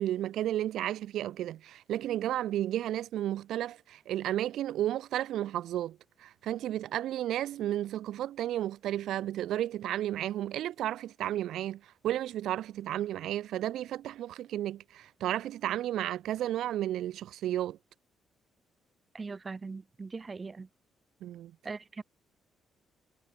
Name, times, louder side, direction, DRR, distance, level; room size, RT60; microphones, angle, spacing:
voice 1, 0.0-17.8 21.2-21.5, right 12 dB, 80° right, 0.3 m, -33 dB
voice 2, 19.1-20.7 21.6-22.0, right 4 dB, 30° right, 0.7 m, -40 dB
cardioid pair, 90°, 0 cm